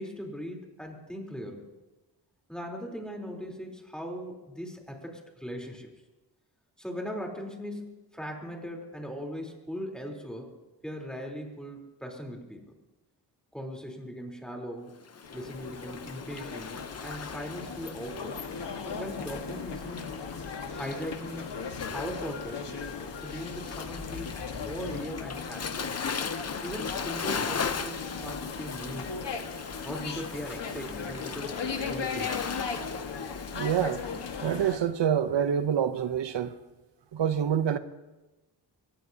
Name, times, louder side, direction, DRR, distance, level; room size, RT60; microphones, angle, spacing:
voice 1, 0.0-1.7 2.5-5.9 6.8-10.5 10.8-12.6 13.5-15.0 15.3-18.4 18.8-20.2 20.7-21.6 21.9-22.7 23.2-25.9 26.6-29.3 29.8-31.6 31.9-32.4, equal, ahead, 3.6 m, -39 dB
Waves surf, 15.0-34.5, left 6 dB, 35° left, 0.7 m, -39 dB
sound 1, 15.2-34.8, left 5 dB, 75° left, 1.6 m, -37 dB
voice 2, 33.5-34.0 34.4-36.6 37.1-37.8, right 8 dB, 85° right, 0.8 m, -26 dB
23.0 x 19.0 x 2.8 m
wide cardioid pair, 85°, 42 cm